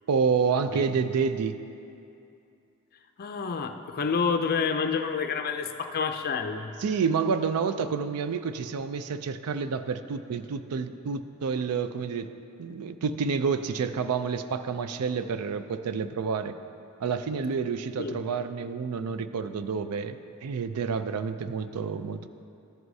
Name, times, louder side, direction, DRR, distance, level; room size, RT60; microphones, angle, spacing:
voice 1, 0.1-1.6 6.8-12.3 12.6-16.6 17.0-22.3, right 5 dB, 85° right, 11 dB, 0.4 m, -29 dB
voice 2, 3.2-6.7 18.0-18.2, left 5 dB, 45° left, 7 dB, 0.5 m, -28 dB
13.5 x 7.8 x 2.7 m, 2.6 s
head